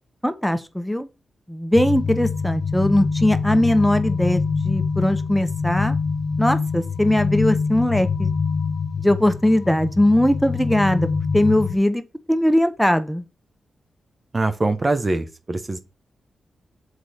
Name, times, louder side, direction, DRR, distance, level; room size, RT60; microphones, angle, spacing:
voice 1, 0.2-1.1 1.5-6.0 6.4-8.3 9.0-11.1 11.3-12.0 12.3-13.2, left 1 dB, ahead, 0.9 m, -20 dB
sound 1, 1.8-11.8, left 5 dB, 65° left, 0.7 m, -25 dB
voice 2, 14.3-15.8, right 2 dB, 40° right, 0.9 m, -23 dB
6.2 x 4.7 x 4.2 m
supercardioid pair, 45°, 0 cm